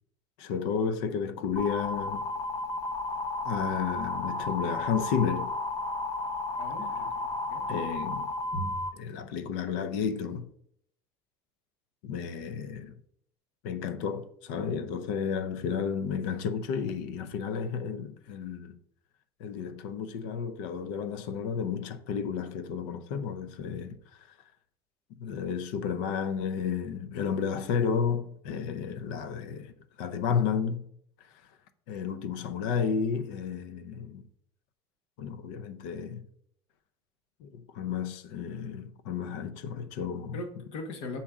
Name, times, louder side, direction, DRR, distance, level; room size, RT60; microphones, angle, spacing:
voice 1, 0.4-2.3 3.4-5.5 7.7-8.3 9.0-10.5 12.0-13.0 13.6-18.8 19.4-24.0 25.2-30.9 31.9-34.2 35.2-36.2 37.4-40.4, left 6 dB, 80° left, 0.6 m, -32 dB
sound 1, 1.6-8.9, left 2 dB, 25° left, 0.6 m, -33 dB
voice 2, 6.6-7.7 8.5-8.8 40.3-41.2, left 1 dB, 65° left, 1.4 m, -39 dB
7.1 x 4.2 x 3.7 m
cardioid pair, 145°, 11 cm